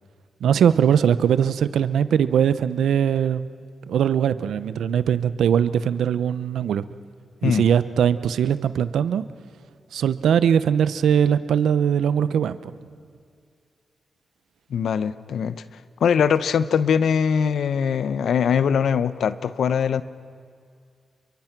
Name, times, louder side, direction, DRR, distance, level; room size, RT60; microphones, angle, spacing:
voice 1, 0.4-3.5 3.9-6.8 7.4-9.2 9.9-12.7, right 8 dB, 90° right, 14 dB, 0.7 m, -21 dB
voice 2, 14.7-15.6 16.0-20.0, left 7 dB, 80° left, 14 dB, 0.8 m, -21 dB
29.5 x 23.5 x 6.0 m, 2.3 s
cardioid pair, 60°, 0 cm